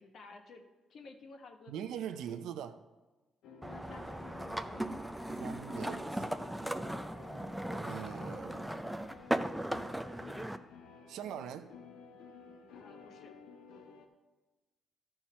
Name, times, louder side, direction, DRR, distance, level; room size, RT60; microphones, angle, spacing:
voice 1, 0.0-2.6 3.7-4.2 12.7-13.3, left 3 dB, 65° left, 4 dB, 1.2 m, -54 dB
voice 2, 1.7-2.8 5.4-6.4 7.8-8.6 11.1-11.7, right 9 dB, 85° right, 9 dB, 0.6 m, -42 dB
sound 1, 3.4-14.1, left 4 dB, 85° left, 0.9 m, -53 dB
sound 2, 3.6-10.6, right 1 dB, 5° right, 0.5 m, -38 dB
12.5 x 4.5 x 5.5 m, 1.2 s
cardioid pair, 90°, 0 cm